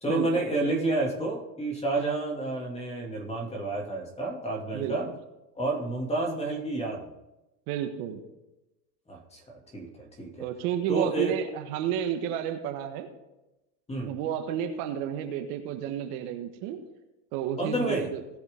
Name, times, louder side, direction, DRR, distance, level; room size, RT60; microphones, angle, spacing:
voice 1, 0.0-5.1 5.5-7.1 9.1-9.4 9.7-10.5 10.9-11.3 13.9-14.1 17.6-18.1, right 2 dB, 15° left, 0 dB, 2.7 m, -30 dB
voice 2, 7.7-8.2 10.4-13.1 14.0-16.8 17.3-18.2, right 9 dB, 60° right, 6 dB, 1.5 m, -31 dB
18.0 x 6.6 x 3.8 m, 0.98 s
supercardioid pair, 115°, 50 cm